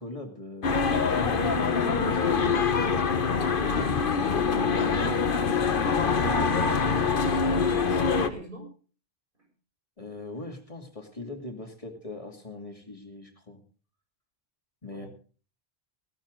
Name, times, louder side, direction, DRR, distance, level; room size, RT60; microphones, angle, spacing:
voice 1, 0.0-2.9 3.5-6.5 10.0-13.6 14.8-15.1, left 2 dB, 35° left, 3 dB, 2.5 m, -40 dB
sound 1, 0.6-8.3, left 5 dB, 60° left, 1.3 m, -24 dB
voice 2, 7.0-8.7 14.9-15.1, right 1 dB, 55° right, 0 dB, 7.4 m, -40 dB
18.5 x 13.5 x 3.8 m, 0.39 s
omnidirectional pair, 1.0 m